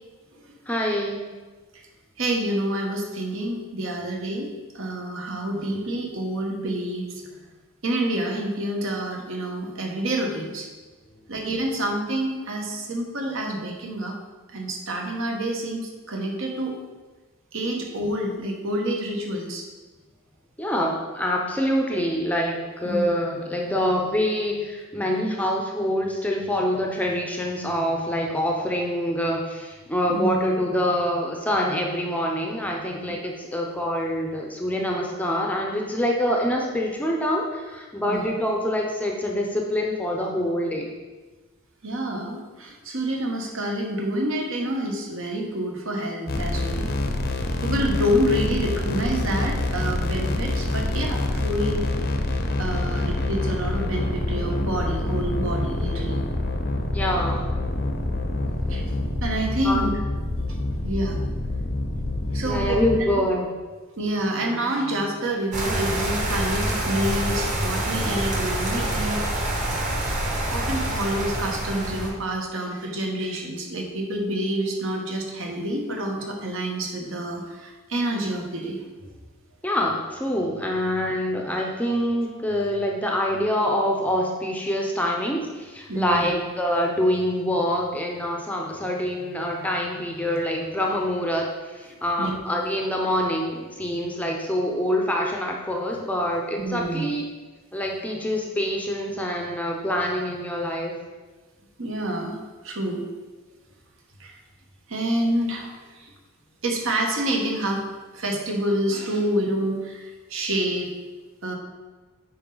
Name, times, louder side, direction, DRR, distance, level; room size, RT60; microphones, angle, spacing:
voice 1, 0.7-1.2 20.6-40.9 56.9-57.5 59.6-59.9 62.4-63.5 79.6-97.3 97.7-100.9, equal, 5° left, 0 dB, 0.7 m, -25 dB
voice 2, 2.2-4.5 4.7-7.1 7.8-10.7 11.3-14.1 14.5-16.8 17.5-19.6 22.8-23.1 30.1-30.6 33.2-33.3 38.1-38.2 41.8-46.9 47.6-51.8 52.6-56.2 58.7-58.8 59.2-59.9 60.8-61.2 62.3-62.8 64.0-69.2 70.5-78.8 85.9-86.3 92.2-92.4 96.6-97.0 101.8-102.4 102.6-103.1 104.2-104.4 104.9-106.1 106.6-107.8 108.1-110.9 111.4-111.5, right 1 dB, 65° right, 1 dB, 1.3 m, -27 dB
sound 1, 46.3-63.0, left 2 dB, 45° left, 0.7 m, -26 dB
sound 2, 65.5-72.1, right 1 dB, 35° right, 1.3 m, -26 dB
8.5 x 5.3 x 4.0 m, 1.3 s
head